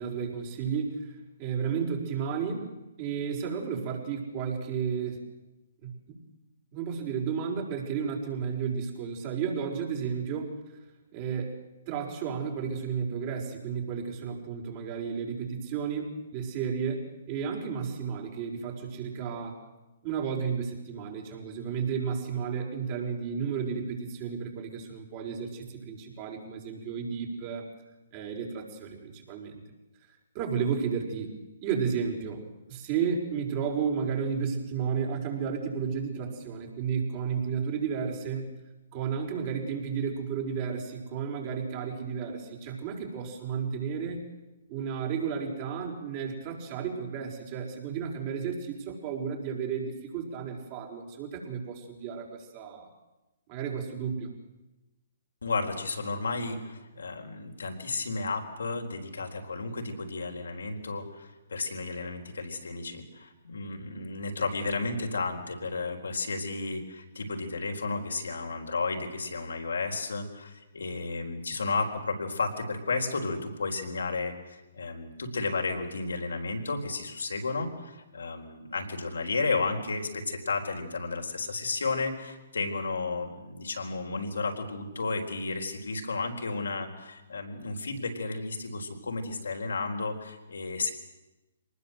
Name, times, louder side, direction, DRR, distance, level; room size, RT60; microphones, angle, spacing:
voice 1, 0.0-2.7 3.0-5.2 5.8-6.2 6.7-10.5 11.1-11.5 11.9-19.6 20.0-27.7 28.1-29.6 30.3-31.3 31.6-32.4 32.7-38.5 38.9-44.3 44.7-52.9 53.5-54.3, right 6 dB, 35° right, 1 dB, 5.5 m, -32 dB
voice 2, 55.4-90.9, left 3 dB, 80° left, 3 dB, 4.1 m, -33 dB
24.0 x 19.5 x 7.8 m, 1.0 s
hypercardioid pair, 135°, 0 cm